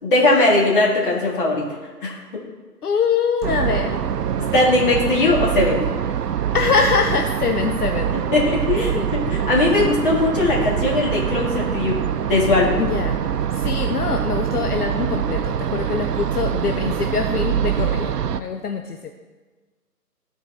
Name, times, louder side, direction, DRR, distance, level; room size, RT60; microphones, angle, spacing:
voice 1, 0.0-1.6 2.0-2.4 4.5-5.9 8.3-12.0 12.3-12.8, left 2 dB, 35° left, -3 dB, 1.9 m, -19 dB
voice 2, 2.8-4.0 6.5-8.2 8.9-9.1 12.8-13.2 13.5-19.1, left 5 dB, 70° left, 5 dB, 0.7 m, -23 dB
sound 1, 3.4-18.4, right 9 dB, 75° right, 0.6 m, -24 dB
13.5 x 4.6 x 3.3 m, 1.3 s
figure-of-eight pair, 155°, 48 cm